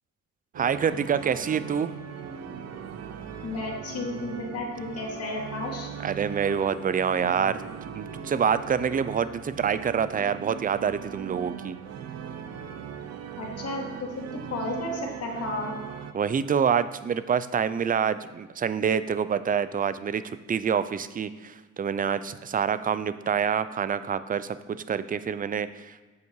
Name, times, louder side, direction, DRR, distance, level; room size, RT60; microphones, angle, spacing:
sound 1, 0.5-16.1, right 8 dB, 60° right, 0.8 m, -39 dB
voice 1, 0.6-1.9 6.0-11.8 16.1-26.1, right 7 dB, 30° right, 14 dB, 0.5 m, -27 dB
voice 2, 3.4-5.9 13.4-15.7, left 2 dB, 55° left, 0 dB, 2.4 m, -33 dB
8.3 x 7.0 x 4.7 m, 1.3 s
cardioid pair, 90°, 30 cm